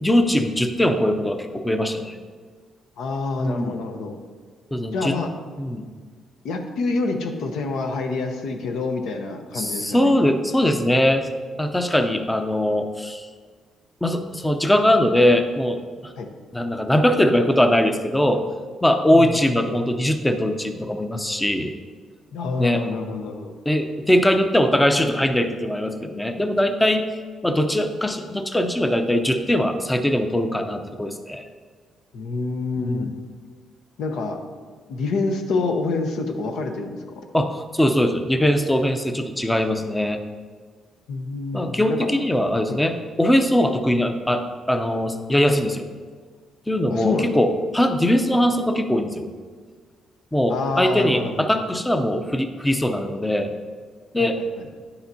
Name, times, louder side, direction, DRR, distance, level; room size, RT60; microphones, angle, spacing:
voice 1, 0.0-2.2 3.4-3.8 4.7-5.2 5.6-5.9 9.5-11.3 11.6-13.3 14.0-16.1 16.5-18.4 18.8-21.7 22.6-22.8 23.7-27.1 27.4-31.5 32.8-33.1 37.3-40.2 41.5-45.9 46.7-49.3 50.3-53.5 54.1-54.4, left 1 dB, 10° left, 7 dB, 0.6 m, -21 dB
voice 2, 3.0-4.2 4.9-5.3 6.4-10.1 16.2-16.3 19.1-19.4 22.3-23.5 32.1-33.1 34.0-34.4 34.9-37.0 41.1-42.1 42.7-42.8 46.9-47.4 50.5-51.5 54.2-54.3 54.6-54.7, left 3 dB, 80° left, 5 dB, 0.8 m, -27 dB
9.5 x 6.9 x 2.7 m, 1.5 s
cardioid pair, 90°, 0 cm